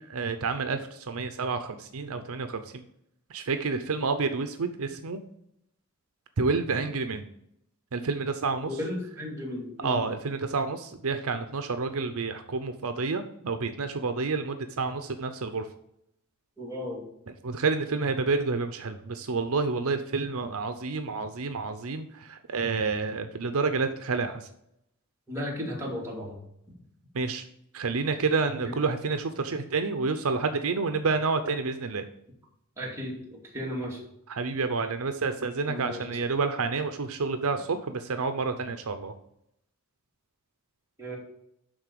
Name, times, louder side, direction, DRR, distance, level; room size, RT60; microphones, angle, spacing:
voice 1, 0.0-2.8 3.3-5.2 6.4-7.2 7.9-8.7 9.8-15.7 17.3-24.5 27.1-27.4 27.7-32.0 34.3-39.1, right 4 dB, 70° right, 8 dB, 0.7 m, -29 dB
voice 2, 8.7-10.0 16.6-17.0 25.3-26.4 32.8-34.0 35.7-36.2 41.0-41.2, left 1 dB, 15° right, -4 dB, 2.4 m, -35 dB
11.0 x 3.8 x 6.8 m, 0.77 s
head